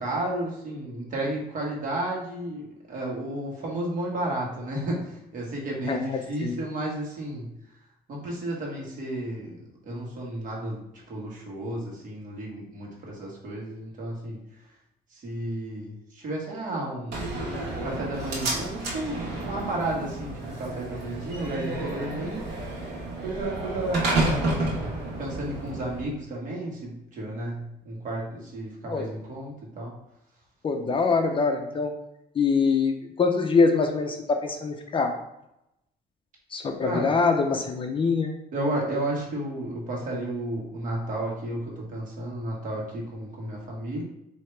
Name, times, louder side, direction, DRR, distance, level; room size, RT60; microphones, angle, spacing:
voice 1, 0.0-7.5 8.1-9.5 9.8-10.8 11.1-14.4 15.1-17.2 17.8-22.5 23.2-29.9 36.8-37.2 38.5-44.0, right 1 dB, 50° right, -2 dB, 1.5 m, -32 dB
voice 2, 5.8-6.5 28.9-29.1 30.6-31.9 32.4-35.1 36.5-38.3, left 4 dB, 30° left, 4 dB, 0.5 m, -24 dB
Slam, 17.1-26.1, right 2 dB, 85° right, 1.2 m, -31 dB
4.5 x 2.8 x 3.3 m, 0.83 s
cardioid pair, 110°, 17 cm